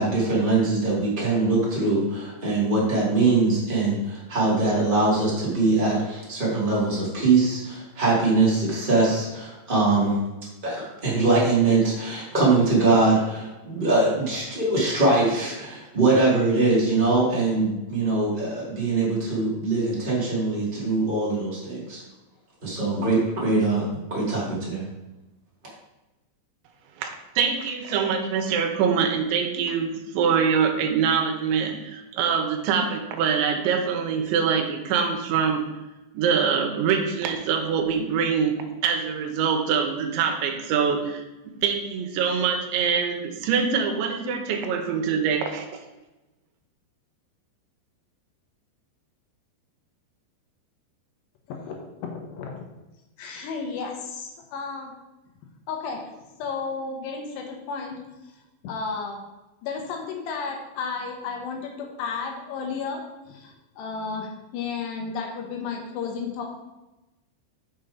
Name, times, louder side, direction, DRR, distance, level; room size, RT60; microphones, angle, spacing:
voice 1, 0.0-10.2 10.6-22.0 22.6-24.8, right 3 dB, 25° right, -7 dB, 1.0 m, -22 dB
voice 2, 27.4-35.6 36.1-41.2 41.6-45.7, right 6 dB, 80° right, 5 dB, 3.1 m, -24 dB
voice 3, 51.5-52.7 53.2-54.9 55.7-56.0 56.4-58.0 58.6-59.2 59.6-63.0 63.3-66.4, left 5 dB, 75° left, 2 dB, 2.9 m, -33 dB
6.9 x 5.9 x 5.0 m, 1.0 s
omnidirectional pair, 5.4 m